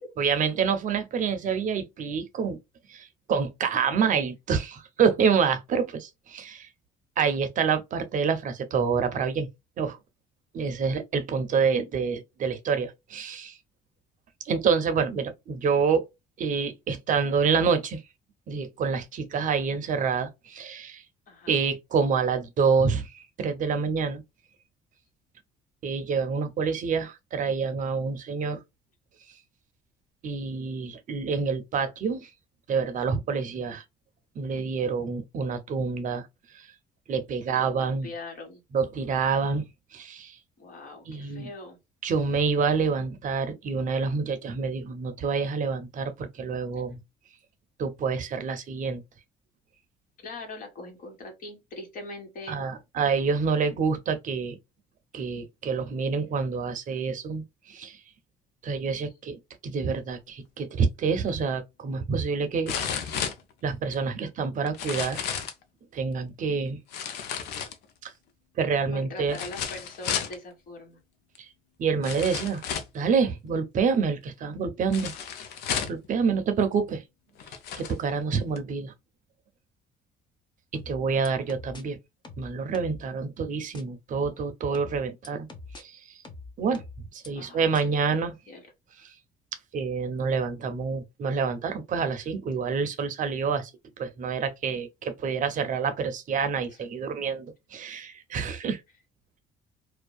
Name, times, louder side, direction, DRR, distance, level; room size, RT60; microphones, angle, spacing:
voice 1, 0.2-2.6 2.9-6.7 7.2-9.5 9.8-10.0 10.5-13.6 14.4-16.0 16.4-18.0 18.5-21.0 21.5-24.2 25.8-28.6 30.2-32.3 32.7-33.8 34.4-36.3 36.5-36.7 37.1-38.1 38.7-40.4 41.1-41.5 42.0-47.0 47.8-49.0 52.5-54.6 55.1-58.0 58.6-63.1 63.6-65.2 65.9-66.8 68.0-68.1 68.6-69.4 71.4-71.5 71.8-72.6 72.9-75.1 75.9-77.0 77.8-78.9 80.7-82.0 82.4-85.5 85.8-86.0 86.6-86.8 87.1-88.3 89.0-89.1 89.7-93.7 94.0-98.8, right 5 dB, 50° right, 0.6 m, -27 dB
voice 2, 21.3-21.7 37.4-38.6 40.6-41.8 50.2-52.6 68.9-71.0 87.3-88.6, left 2 dB, 55° left, 1.5 m, -42 dB
sound 1, 61.3-61.4 62.7-64.0 64.7-65.6 66.9-68.1 69.3-70.4 71.4-71.5 72.0-73.0 74.9-76.1 76.9-77.0 77.4-78.0 78.6-78.7, left 7 dB, 75° left, 0.6 m, -32 dB
sound 2, 80.7-81.8 82.2-83.0 83.7-83.8 84.7-85.8 86.2-87.3 87.7-87.8, left 3 dB, 25° left, 0.7 m, -43 dB
2.6 x 2.2 x 2.2 m
cardioid pair, 110°, 17 cm